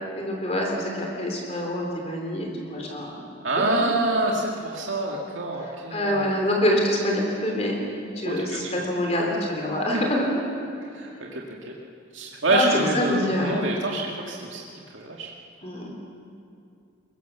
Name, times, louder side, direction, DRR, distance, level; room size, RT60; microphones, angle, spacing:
voice 1, 0.2-3.2 3.6-3.9 5.6-7.8 8.1-10.4 12.5-13.6 13.9-14.0 15.6-16.0, left 1 dB, 30° left, 0 dB, 3.3 m, -26 dB
voice 2, 3.4-6.4 8.2-8.7 10.9-11.4 12.1-14.6 14.9-15.3, right 2 dB, 75° right, -2 dB, 2.1 m, -26 dB
22.5 x 22.5 x 7.0 m, 2.4 s
head